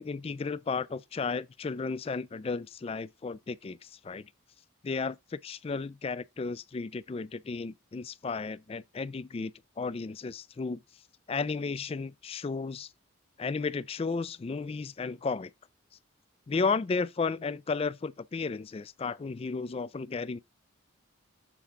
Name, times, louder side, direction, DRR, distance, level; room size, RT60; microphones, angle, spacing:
voice 1, 0.0-4.3 4.8-5.2 5.4-10.8 11.3-12.9 13.4-15.5 16.5-20.4, left 4 dB, 30° left, 0.3 m, -33 dB
7.4 x 3.7 x 4.6 m
head